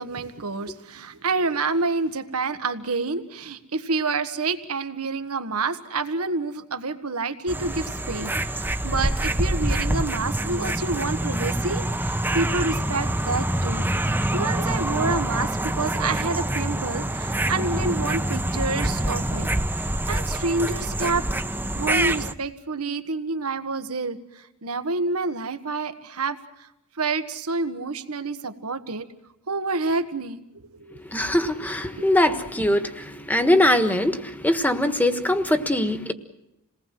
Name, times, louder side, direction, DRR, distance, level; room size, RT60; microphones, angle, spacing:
voice 1, 0.0-13.9 14.3-19.5 20.1-21.3 21.7-24.2 24.6-26.4 27.0-29.1 29.5-30.4 30.7-30.9 32.0-32.1, right 3 dB, 80° right, 9 dB, 1.6 m, -28 dB
sound 1, 7.5-22.3, right 1 dB, 10° right, 0.9 m, -26 dB
voice 2, 30.9-36.1, left 1 dB, 10° left, 8 dB, 1.4 m, -22 dB
28.0 x 19.5 x 7.7 m, 0.88 s
head